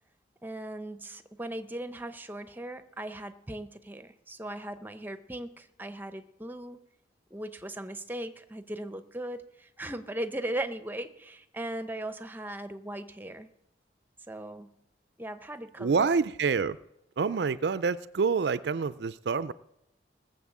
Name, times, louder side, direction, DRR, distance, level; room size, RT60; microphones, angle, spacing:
voice 1, 0.4-6.8 7.3-13.5 14.3-14.7 15.2-16.1, right 1 dB, 10° right, 11 dB, 0.7 m, -38 dB
voice 2, 15.8-16.8 17.2-19.5, right 5 dB, 65° right, 16 dB, 0.4 m, -27 dB
19.0 x 7.0 x 7.3 m, 0.85 s
head